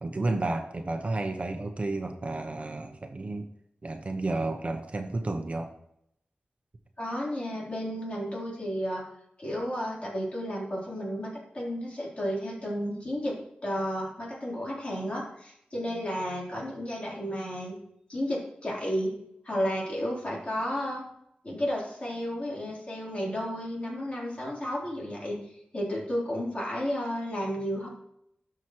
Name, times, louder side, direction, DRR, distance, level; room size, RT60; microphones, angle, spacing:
voice 1, 0.0-3.5 3.8-5.7, right 2 dB, 40° right, 5 dB, 0.8 m, -31 dB
voice 2, 7.0-9.0 9.4-17.8 18.1-19.1 19.4-21.0 21.4-25.4 25.7-27.9, equal, 35° left, -5 dB, 3.8 m, -32 dB
12.5 x 5.9 x 3.1 m, 0.76 s
wide cardioid pair, 75°, 3 cm